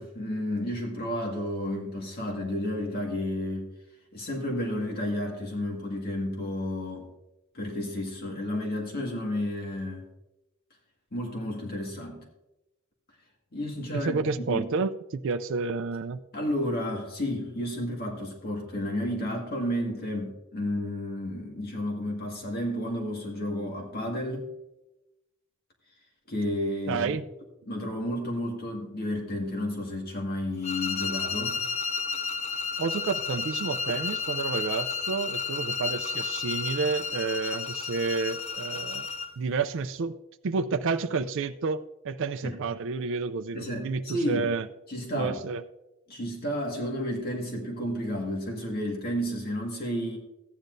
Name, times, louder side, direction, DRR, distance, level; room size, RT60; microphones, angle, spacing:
voice 1, 0.0-3.7 4.1-7.1 7.5-10.1 11.1-12.2 13.5-14.7 16.3-24.5 26.3-27.1 27.7-31.6 42.4-42.6 43.5-44.5 44.9-45.4 46.1-50.2, left 1 dB, 50° left, 0 dB, 1.8 m, -31 dB
voice 2, 13.9-16.2 26.9-27.2 32.8-39.1 39.4-40.2 40.4-44.7 45.1-45.6, right 4 dB, 65° right, 9 dB, 0.4 m, -30 dB
sound 1, 30.6-39.4, left 4 dB, 30° left, 0.6 m, -32 dB
14.5 x 10.0 x 2.6 m, 0.94 s
head